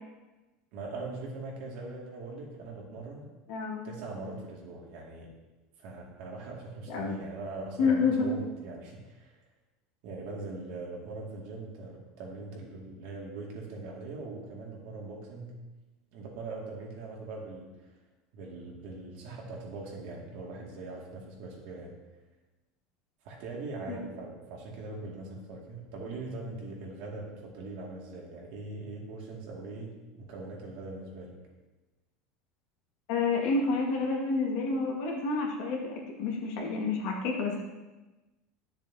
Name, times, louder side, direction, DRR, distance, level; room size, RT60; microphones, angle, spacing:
voice 1, 0.7-3.3 3.8-5.3 5.8-9.4 10.0-15.5 16.1-17.7 18.3-21.9 23.2-31.4, right 3 dB, 65° right, -2 dB, 2.2 m, -41 dB
voice 2, 3.5-3.9 6.9-7.2 7.8-8.4 23.9-24.0 33.1-37.6, left 4 dB, 65° left, -1 dB, 1.9 m, -29 dB
10.5 x 6.9 x 2.8 m, 1.1 s
supercardioid pair, 140°, 3 cm